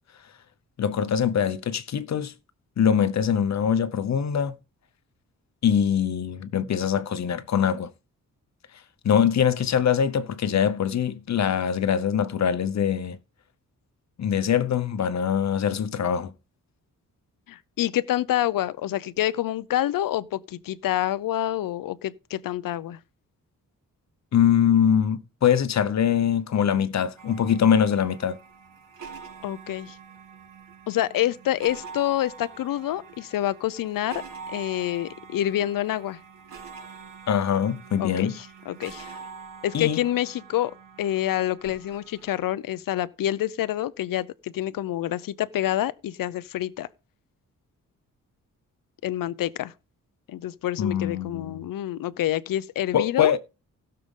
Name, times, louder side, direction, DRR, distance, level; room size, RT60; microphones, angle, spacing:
voice 1, 0.8-2.3 2.8-4.6 5.6-7.9 9.0-13.2 14.2-16.3 24.3-28.4 37.3-38.3 39.7-40.0 50.8-51.6 52.9-53.4, left 8 dB, 55° left, 0.9 m, -23 dB
voice 2, 17.5-23.0 29.4-30.0 30.9-34.2 34.5-36.2 38.0-39.1 39.6-40.7 41.0-46.9 49.0-49.7 50.3-53.3, left 13 dB, 80° left, 0.6 m, -27 dB
sound 1, 27.2-42.4, right 5 dB, 70° right, 4.4 m, -45 dB
16.5 x 6.7 x 3.7 m
wide cardioid pair, 140°, 33 cm